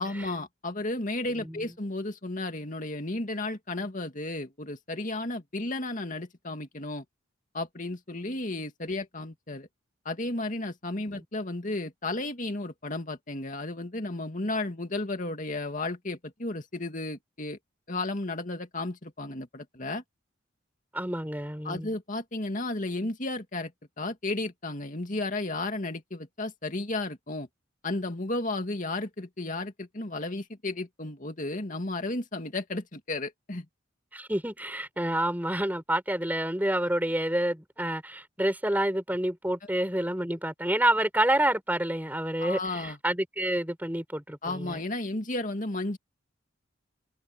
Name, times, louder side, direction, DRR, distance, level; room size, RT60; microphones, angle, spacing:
voice 1, 0.0-7.0 7.5-9.7 10.0-17.6 17.9-20.0 21.6-23.7 24.0-27.5 27.8-33.7 42.4-43.0 44.4-46.0, left 2 dB, 40° left, 2.4 m, -33 dB
voice 2, 20.9-21.9 34.1-44.8, right 1 dB, 10° right, 4.6 m, -28 dB
head